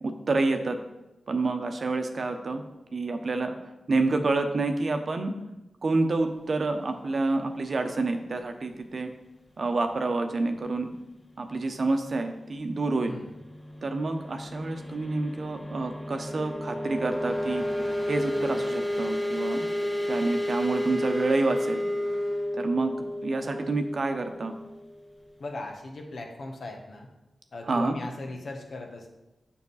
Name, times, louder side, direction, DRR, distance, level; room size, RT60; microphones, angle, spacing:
voice 1, 0.0-0.8 1.3-2.6 2.9-3.5 3.9-5.3 5.8-9.1 9.6-10.9 11.4-13.2 13.8-17.6 18.1-19.7 20.1-21.8 22.5-22.9 23.2-24.5 27.7-28.0, right 3 dB, 60° right, 6 dB, 0.8 m, -28 dB
sound 1, 12.8-25.3, left 1 dB, 10° left, 0.7 m, -32 dB
voice 2, 13.1-13.4 25.4-27.1 27.5-29.1, left 2 dB, 70° left, 2 dB, 1.2 m, -38 dB
7.3 x 5.8 x 4.1 m, 0.96 s
cardioid pair, 50°, 0 cm